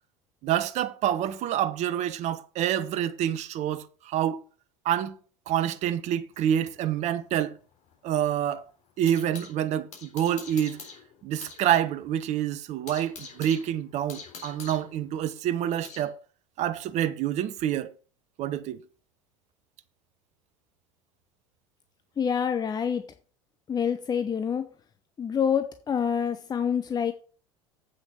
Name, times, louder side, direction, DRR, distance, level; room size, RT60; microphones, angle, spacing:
voice 1, 0.4-4.4 4.8-5.2 5.5-7.6 8.0-8.7 9.0-10.8 11.2-16.2 16.6-17.9 18.4-18.8, right 10 dB, 45° right, 0.9 m, -27 dB
sound 1, 6.3-9.6 9.9-11.6 11.9-12.0 12.4-16.1, left 5 dB, 45° left, 3.8 m, -45 dB
voice 2, 22.2-23.0 23.7-24.7 25.2-27.1, left 7 dB, 25° left, 0.9 m, -27 dB
8.2 x 6.2 x 5.6 m
figure-of-eight pair, 75°, 16 cm